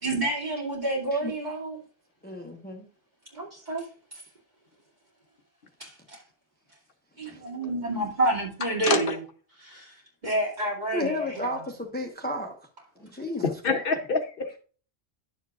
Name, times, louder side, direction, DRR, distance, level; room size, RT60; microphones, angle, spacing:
voice 1, 0.0-1.8 3.3-3.9 5.8-6.2 7.2-9.2 9.6-9.9 10.2-11.6, right 2 dB, 40° right, 2.7 m, -29 dB
voice 2, 2.2-2.8 7.2-7.4 10.9-12.6 13.0-13.4, left 1 dB, 10° left, 0.9 m, -32 dB
voice 3, 8.8-9.2 13.6-14.6, left 4 dB, 60° left, 0.9 m, -26 dB
10.5 x 7.2 x 2.4 m
omnidirectional pair, 1.1 m